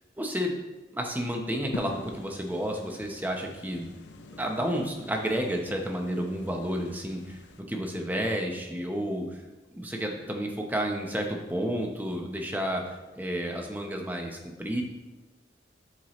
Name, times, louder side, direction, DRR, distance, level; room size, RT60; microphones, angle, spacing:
voice 1, 0.2-0.5 0.9-3.9 4.4-7.4 7.7-9.3 9.8-12.9 13.1-14.8, equal, 10° right, 1 dB, 0.9 m, -31 dB
sound 1, 1.7-7.6, left 2 dB, 85° left, 0.7 m, -45 dB
12.0 x 4.6 x 3.2 m, 1.1 s
head